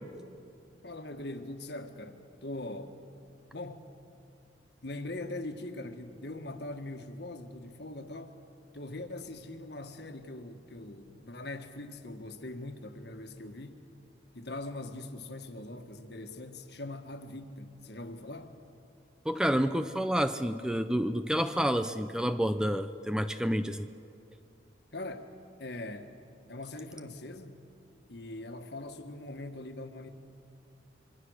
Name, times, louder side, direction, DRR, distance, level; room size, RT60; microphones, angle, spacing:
voice 1, 0.8-3.0 3.5-3.8 4.8-8.4 8.7-13.8 14.3-18.6 24.9-25.3 25.6-26.1 26.5-27.6 28.1-30.1, left 2 dB, 60° left, 7 dB, 1.6 m, -41 dB
voice 2, 19.2-23.9, equal, 5° right, 10 dB, 0.5 m, -29 dB
26.0 x 24.0 x 6.5 m, 2.5 s
head